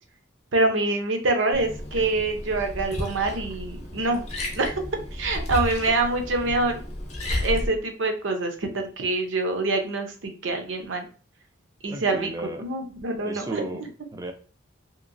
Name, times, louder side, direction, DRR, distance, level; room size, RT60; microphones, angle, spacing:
voice 1, 0.5-4.2 4.6-4.8 5.1-6.8 7.4-11.1 11.8-12.3 12.6-13.6, right 2 dB, 65° right, 5 dB, 0.6 m, -25 dB
Liquid, 1.5-7.7, left 1 dB, 35° left, 0.7 m, -32 dB
voice 2, 11.9-12.7 13.2-14.3, right 2 dB, 15° right, 5 dB, 0.4 m, -35 dB
2.9 x 2.9 x 2.5 m, 0.39 s
head